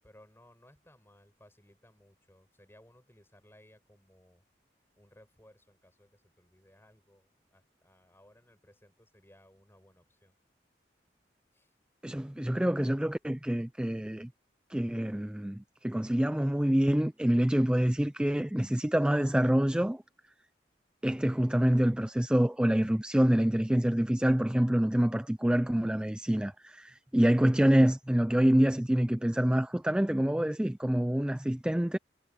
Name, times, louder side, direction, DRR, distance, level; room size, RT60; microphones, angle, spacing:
voice 1, 0.0-4.4 5.0-10.3 11.5-11.7, left 1 dB, 15° left, 7.5 m, -61 dB
voice 2, 12.0-14.3 14.7-20.0 21.0-32.0, equal, 5° right, 0.3 m, -26 dB
head